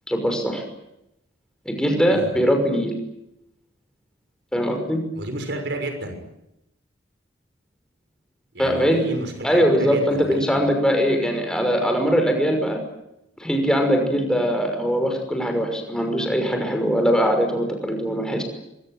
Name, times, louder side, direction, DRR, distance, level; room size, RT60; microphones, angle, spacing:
voice 1, 0.1-0.6 1.7-2.9 4.5-5.0 8.6-9.0 9.4-12.8 13.4-18.4, equal, 5° left, 4 dB, 5.9 m, -21 dB
voice 2, 5.1-6.2 8.5-10.5, right 1 dB, 65° right, 6 dB, 6.3 m, -31 dB
24.0 x 24.0 x 9.2 m, 0.86 s
head